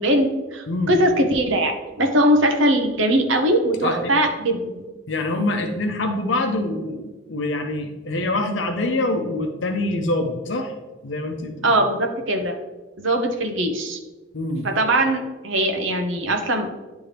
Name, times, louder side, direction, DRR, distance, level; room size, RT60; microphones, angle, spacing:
voice 1, 0.0-4.8 11.6-12.6 13.0-14.0 14.6-16.7, right 1 dB, 80° right, 4 dB, 0.9 m, -21 dB
voice 2, 3.8-4.1 5.1-10.7 11.0-11.8 14.3-14.7, left 2 dB, 70° left, 4 dB, 0.7 m, -25 dB
10.5 x 3.4 x 3.3 m, 1.2 s
head